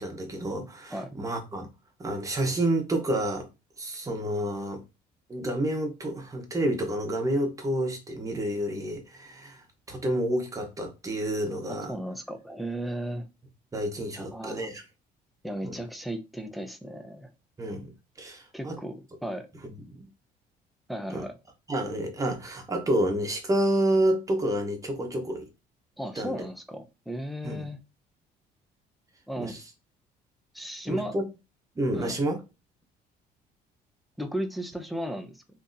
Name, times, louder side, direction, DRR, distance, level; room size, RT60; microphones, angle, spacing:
voice 1, 0.0-1.7 2.0-3.5 3.8-4.8 5.3-11.9 13.7-14.8 15.6-15.8 17.6-17.9 18.2-18.7 19.9-20.1 21.1-21.2 21.7-25.5 26.2-26.3 27.4-27.7 29.4-29.6 30.8-31.3 31.8-32.4, right 1 dB, 20° right, 0.9 m, -29 dB
voice 2, 11.7-13.3 14.1-14.7 15.4-17.3 18.5-19.5 20.9-21.4 26.0-27.8 29.3-29.6 30.5-31.2 31.9-32.2 34.2-35.4, equal, ahead, 0.5 m, -35 dB
3.5 x 2.7 x 2.6 m
cardioid pair, 110°, 17 cm